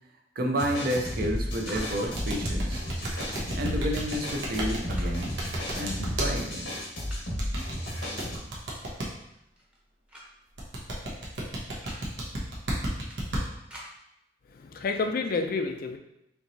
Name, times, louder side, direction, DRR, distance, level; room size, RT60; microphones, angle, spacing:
voice 1, 0.4-2.9 3.6-5.4 5.7-6.8, equal, 55° right, 2 dB, 0.6 m, -30 dB
sound 1, 0.6-8.4, equal, 90° left, 1.2 m, -33 dB
sound 2, 1.2-1.3 1.6-1.9 3.0-3.4 4.7-5.1 6.2-6.3 6.7-7.4 8.8-8.9 9.2-9.8 10.1-10.3 10.6-10.7 11.6-12.0 13.1-13.9 14.8-15.1, equal, 5° right, 0.8 m, -49 dB
sound 3, 1.7-6.3 7.4-9.1 10.6-13.4, right 1 dB, 85° right, 1.0 m, -33 dB
voice 2, 14.5-16.0, left 4 dB, 55° left, 6 dB, 0.4 m, -29 dB
4.4 x 3.0 x 2.7 m, 0.83 s
head